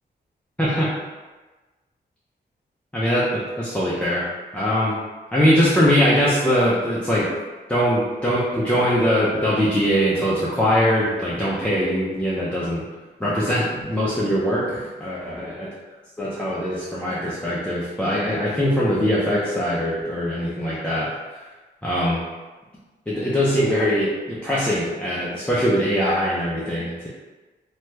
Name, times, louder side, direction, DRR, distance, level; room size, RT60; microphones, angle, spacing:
voice 1, 0.6-0.9 2.9-4.3 4.5-5.0 5.3-7.3 7.7-12.8 13.2-15.5 16.2-21.1 21.8-22.2 23.1-27.1, equal, 5° left, -8 dB, 0.4 m, -22 dB
2.8 x 2.2 x 3.1 m, 1.2 s
wide cardioid pair, 145°, 18 cm